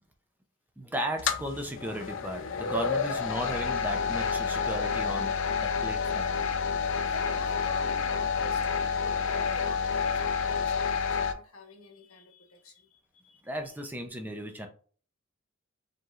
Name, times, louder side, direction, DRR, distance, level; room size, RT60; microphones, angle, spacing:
voice 1, 0.8-5.3 5.6-6.3 13.4-14.7, equal, 10° right, 4 dB, 0.5 m, -35 dB
sound 1, 1.2-11.3, left 6 dB, 60° left, 0.4 m, -29 dB
sound 2, 2.5-10.7, right 1 dB, 55° right, 0.9 m, -49 dB
voice 2, 7.0-13.4, left 3 dB, 80° left, 3 dB, 1.0 m, -49 dB
5.0 x 3.1 x 2.4 m, 0.43 s
head